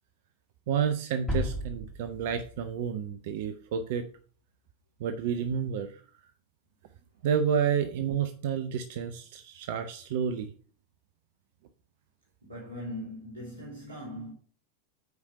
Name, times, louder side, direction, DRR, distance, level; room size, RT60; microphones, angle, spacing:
voice 1, 0.7-4.0 5.0-5.9 7.2-10.5, right 7 dB, 50° right, 0.6 m, -30 dB
sound 1, 1.3-3.3, left 1 dB, 10° left, 3.2 m, -34 dB
voice 2, 12.4-14.3, equal, 70° right, 3.0 m, -40 dB
8.1 x 5.0 x 5.3 m
figure-of-eight pair, 90°, 0 cm